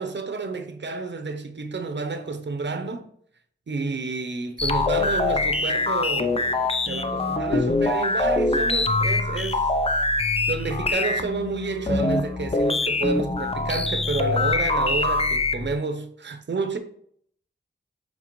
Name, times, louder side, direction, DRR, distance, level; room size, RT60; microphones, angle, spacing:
voice 1, 0.0-3.1 3.7-9.7 10.5-16.8, right 4 dB, 65° right, 0.8 m, -30 dB
sound 1, 4.6-15.7, left 3 dB, 30° left, 0.6 m, -24 dB
7.4 x 4.8 x 3.1 m
wide cardioid pair, 80°, 20 cm